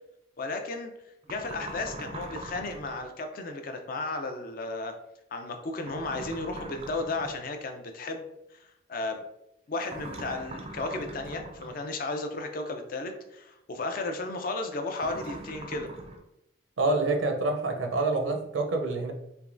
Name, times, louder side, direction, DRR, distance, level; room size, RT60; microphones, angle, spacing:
voice 1, 0.4-0.9 1.3-5.0 5.3-8.2 8.9-9.2 9.7-15.9, left 2 dB, 45° left, 5 dB, 0.4 m, -34 dB
sound 1, 1.2-3.1 5.8-7.4 9.8-11.8 15.0-16.2, right 2 dB, 30° right, 0.3 m, -42 dB
voice 2, 16.8-19.1, right 2 dB, 75° right, 3 dB, 0.6 m, -27 dB
3.3 x 2.9 x 2.5 m, 0.84 s
head